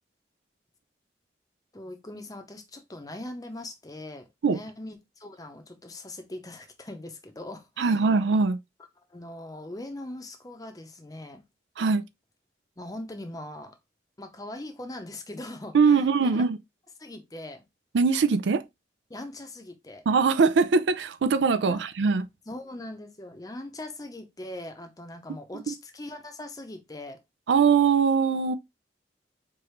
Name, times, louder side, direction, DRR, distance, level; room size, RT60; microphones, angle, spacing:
voice 1, 1.7-8.1 9.1-11.4 12.8-13.8 14.2-16.5 17.0-17.7 19.1-20.0 21.6-21.8 22.5-27.2, left 1 dB, 20° left, 0.6 m, -41 dB
voice 2, 7.8-8.6 11.8-12.0 15.7-16.6 17.9-18.6 20.1-22.3 25.7-25.8 27.5-28.6, right 5 dB, 90° right, 0.4 m, -22 dB
4.7 x 2.5 x 3.1 m
head